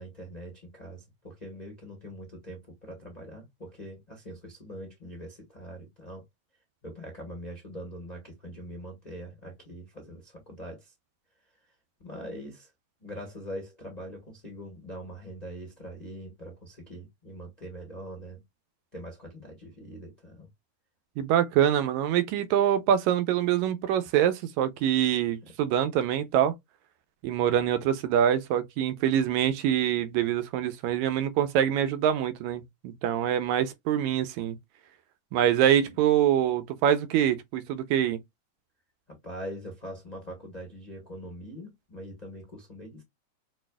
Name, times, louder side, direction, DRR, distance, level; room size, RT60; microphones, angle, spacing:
voice 1, 0.0-6.2 6.8-10.9 12.0-12.7 13.0-18.4 18.9-20.5 25.4-25.5 39.1-43.0, equal, 75° left, 0.3 m, -42 dB
voice 2, 21.2-26.5 27.2-34.6 35.3-38.2, right 10 dB, 85° right, 1.9 m, -25 dB
6.2 x 2.4 x 2.3 m
omnidirectional pair, 3.3 m